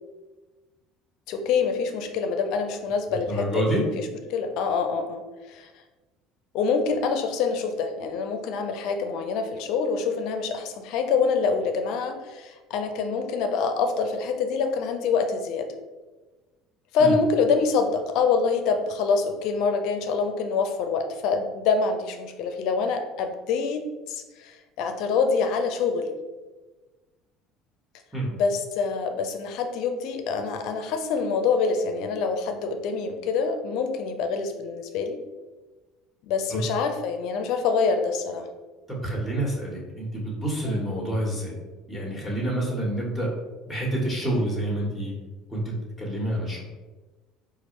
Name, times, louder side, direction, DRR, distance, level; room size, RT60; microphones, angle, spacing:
voice 1, 1.3-5.2 5.5-5.7 6.5-15.7 16.9-26.2 28.3-35.2 36.2-38.5 40.7-40.9, left 5 dB, 65° left, 6 dB, 0.5 m, -26 dB
voice 2, 3.1-3.8 17.0-17.1 28.1-28.3 36.5-36.6 38.9-41.5 41.9-43.3 43.7-45.1 45.5-46.6, right 1 dB, ahead, -4 dB, 1.3 m, -28 dB
4.2 x 2.4 x 3.1 m, 1.2 s
hypercardioid pair, 75°, 0 cm